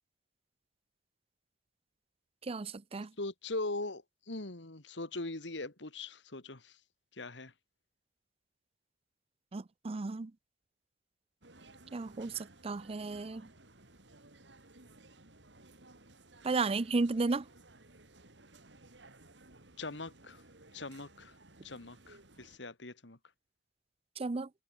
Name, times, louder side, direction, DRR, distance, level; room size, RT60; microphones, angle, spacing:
voice 1, 2.4-3.1 9.5-10.3 11.9-13.5 16.4-17.5 24.2-24.5, right 3 dB, 35° right, 0.5 m, -34 dB
voice 2, 3.2-6.8 7.1-7.5 19.8-20.4 20.7-21.4 21.6-23.2, left 2 dB, 85° left, 2.4 m, -41 dB
sound 1, 11.4-22.6, right 2 dB, 75° right, 4.8 m, -58 dB
head